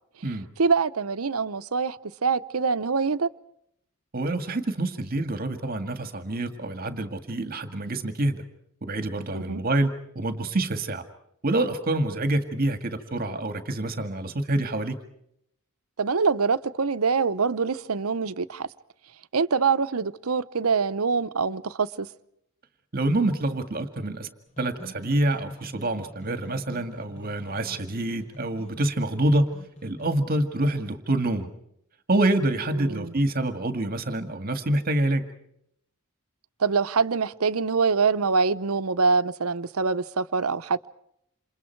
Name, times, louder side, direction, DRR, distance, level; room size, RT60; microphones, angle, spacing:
voice 1, 0.6-3.3 9.3-9.6 16.0-18.7 19.3-22.1 32.8-33.1 36.6-40.9, right 5 dB, 90° right, 0.8 m, -24 dB
voice 2, 4.1-8.4 8.8-11.0 11.4-15.0 22.9-24.3 24.6-29.5 29.8-31.5 32.1-35.3, right 1 dB, 45° right, 1.9 m, -26 dB
sound 1, 24.5-30.1, equal, 35° left, 7.9 m, -46 dB
28.5 x 28.0 x 4.6 m
head